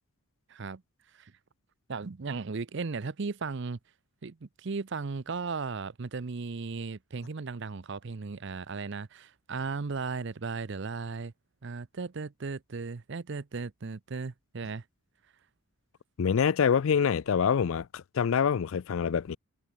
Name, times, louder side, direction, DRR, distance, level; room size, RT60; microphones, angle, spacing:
voice 1, 0.5-0.8 1.1-1.3 1.9-3.8 4.2-11.3 11.6-14.8, right 4 dB, 55° right, 0.6 m, -36 dB
voice 2, 16.2-19.4, left 7 dB, 70° left, 0.4 m, -26 dB
head